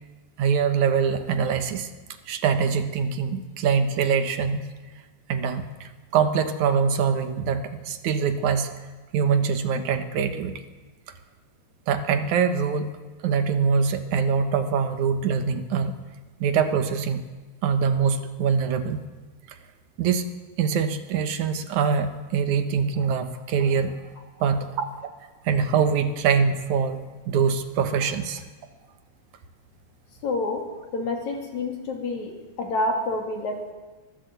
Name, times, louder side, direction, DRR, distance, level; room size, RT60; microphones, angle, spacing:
voice 1, 0.4-1.9 2.3-4.7 5.3-8.7 9.1-10.6 11.9-12.9 13.2-15.9 16.4-17.2 17.6-19.0 19.5-19.6 20.0-20.3 20.6-24.0 24.4-25.0 25.4-27.0 27.3-28.4, right 6 dB, 75° right, 8 dB, 2.7 m, -24 dB
voice 2, 30.2-30.6 30.9-33.7, left 2 dB, 70° left, 2 dB, 4.3 m, -28 dB
23.0 x 15.5 x 8.1 m, 1.3 s
omnidirectional pair, 3.4 m